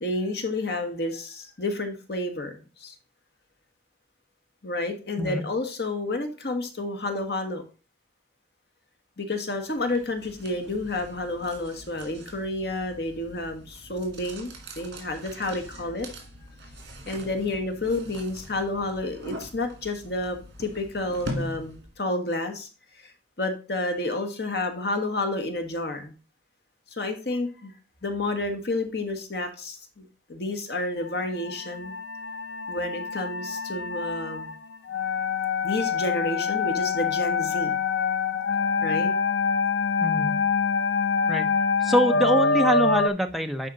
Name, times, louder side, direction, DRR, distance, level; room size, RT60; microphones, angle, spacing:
voice 1, 0.0-2.9 4.6-7.6 9.2-16.1 17.1-22.7 23.0-23.1 23.4-26.1 26.9-27.7 28.0-30.0 30.3-31.9 32.7-34.5 35.6-37.8 38.8-39.1, left 2 dB, 65° left, 6 dB, 1.4 m, -30 dB
sound 1, 9.7-22.0, equal, 75° right, 2.1 m, -42 dB
sound 2, 31.1-43.1, left 5 dB, 80° left, 0.5 m, -25 dB
voice 2, 40.0-40.4 41.3-41.5 41.8-43.7, equal, ahead, 4 dB, 0.7 m, -24 dB
10.0 x 4.3 x 4.0 m, 0.34 s
head